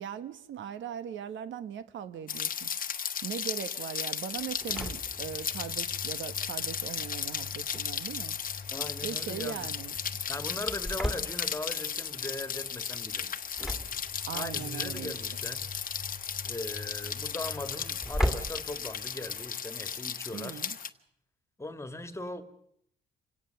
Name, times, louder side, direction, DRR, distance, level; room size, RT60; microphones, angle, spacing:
voice 1, 0.0-2.7 3.2-8.4 9.0-9.9 14.2-15.1 20.3-20.8, right 8 dB, 70° right, 1.3 m, -39 dB
Rain, 2.3-20.9, left 7 dB, 45° left, 1.2 m, -35 dB
Engine / Slam, 4.4-19.5, left 1 dB, ahead, 2.3 m, -39 dB
voice 2, 8.7-9.7 10.3-13.5 14.3-15.7 16.4-20.6 21.6-22.4, left 2 dB, 15° left, 1.9 m, -39 dB
27.0 x 17.0 x 6.9 m
cardioid pair, 90°, 20 cm